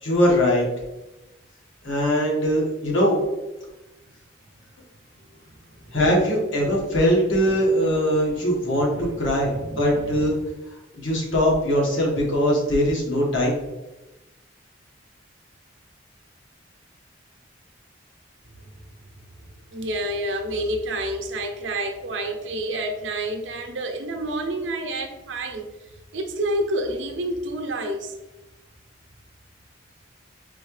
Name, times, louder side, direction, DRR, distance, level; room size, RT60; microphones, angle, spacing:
voice 1, 0.0-0.7 1.8-3.2 5.9-10.4 11.0-13.6, equal, 80° left, -2 dB, 1.4 m, -21 dB
voice 2, 5.3-6.0 8.8-9.1 9.4-10.2 19.7-25.7 26.1-28.1, right 1 dB, 75° right, 5 dB, 0.6 m, -29 dB
4.2 x 3.7 x 3.1 m, 1.0 s
head